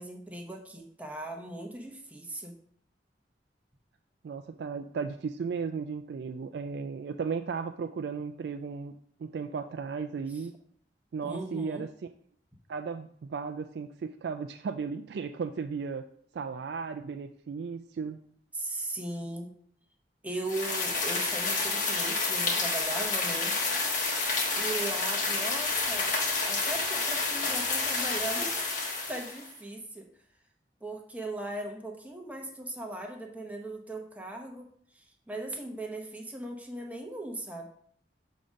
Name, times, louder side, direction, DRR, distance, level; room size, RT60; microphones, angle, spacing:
voice 1, 0.0-2.6 11.2-11.8 18.5-19.5 20.2-23.6 24.6-26.1 26.5-28.6 29.1-30.1 30.8-34.7 34.9-37.7, right 2 dB, 10° right, 1 dB, 0.9 m, -38 dB
voice 2, 4.2-8.9 9.2-10.5 11.1-11.9 12.7-16.1 16.3-18.2, right 5 dB, 60° right, 7 dB, 0.3 m, -35 dB
sound 1, 20.5-29.5, left 3 dB, 45° left, 1.2 m, -29 dB
6.7 x 3.7 x 5.2 m, 0.63 s
head